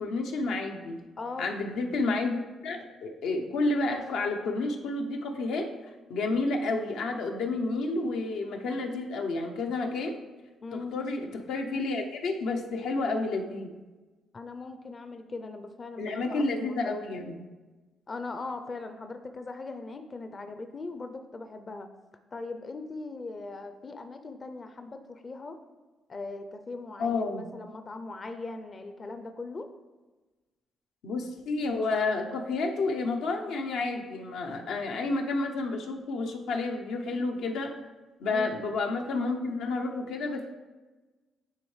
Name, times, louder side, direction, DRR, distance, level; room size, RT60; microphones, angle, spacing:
voice 1, 0.0-1.0 1.4-5.7 6.1-10.2 10.7-13.7 16.0-17.4 27.0-27.5 31.0-37.7 38.2-40.5, left 3 dB, 80° left, 2 dB, 0.7 m, -30 dB
voice 2, 1.2-1.5 10.6-11.0 14.3-17.0 18.1-21.9 22.3-25.6 26.1-29.7 38.3-38.6, left 3 dB, 35° left, 7 dB, 0.5 m, -40 dB
9.3 x 3.5 x 3.2 m, 1.2 s
cardioid pair, 90°, 0 cm